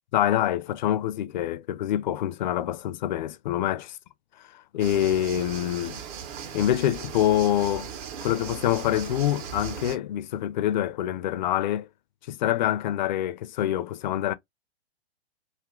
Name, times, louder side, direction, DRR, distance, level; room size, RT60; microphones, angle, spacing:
voice 1, 0.1-3.9 4.5-6.0 6.5-7.9 8.2-11.9 12.3-14.3, left 12 dB, 45° left, 0.5 m, -26 dB
sound 1, 4.8-10.0, right 7 dB, 35° right, 0.8 m, -38 dB
2.7 x 2.5 x 3.6 m
figure-of-eight pair, 120°, 33 cm